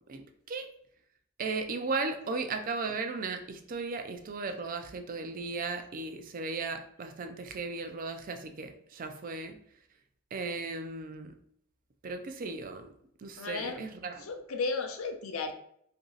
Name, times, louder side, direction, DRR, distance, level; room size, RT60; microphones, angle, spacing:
voice 1, 1.4-9.6 10.3-11.3 12.0-12.9 13.2-14.3, right 3 dB, 40° right, 7 dB, 0.4 m, -36 dB
voice 2, 13.4-13.8 14.2-15.5, left 4 dB, 90° left, 5 dB, 0.5 m, -34 dB
2.9 x 2.6 x 3.7 m, 0.67 s
head